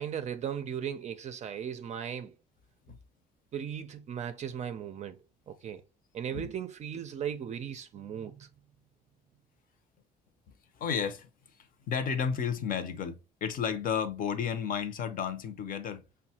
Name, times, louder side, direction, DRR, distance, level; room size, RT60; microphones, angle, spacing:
voice 1, 0.0-2.3 3.5-5.2 5.5-5.8 6.1-8.5, right 8 dB, 45° right, 0.4 m, -37 dB
voice 2, 10.8-11.3 11.9-16.0, left 7 dB, 55° left, 0.7 m, -32 dB
5.3 x 2.2 x 2.8 m
cardioid pair, 110°, 17 cm